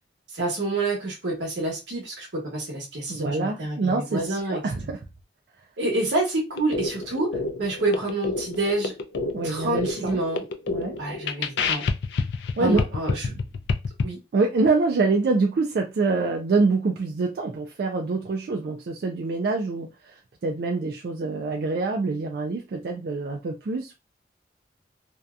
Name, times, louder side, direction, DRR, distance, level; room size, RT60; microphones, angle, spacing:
voice 1, 0.3-4.6 5.8-7.3 7.6-8.9 9.4-10.5 11.0-11.8 12.6-13.3 14.0-14.2, right 2 dB, 90° right, 1.1 m, -28 dB
voice 2, 3.1-4.2 4.5-5.0 9.3-10.2 10.7-11.0 12.6-12.8 14.3-19.9 20.4-23.9, right 3 dB, 60° right, 0.3 m, -25 dB
sound 1, 6.5-14.0, left 4 dB, 75° left, 0.4 m, -28 dB
2.6 x 2.2 x 2.3 m
head